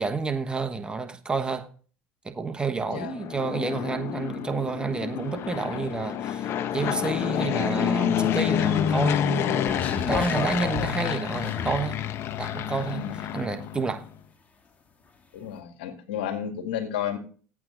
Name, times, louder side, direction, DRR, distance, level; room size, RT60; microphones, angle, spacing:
voice 1, 0.0-1.7 2.2-12.0 12.4-14.0, right 4 dB, 15° right, 1.2 m, -30 dB
Fixed-wing aircraft airplane, 3.0-14.1, left 10 dB, 55° left, 0.8 m, -28 dB
sound 1, 9.6-11.9 12.6-12.7, left 5 dB, 30° left, 1.8 m, -32 dB
voice 2, 9.7-10.1 12.9-13.2 15.3-17.2, left 9 dB, 85° left, 2.0 m, -32 dB
12.0 x 8.7 x 3.9 m
hypercardioid pair, 80°, 5 cm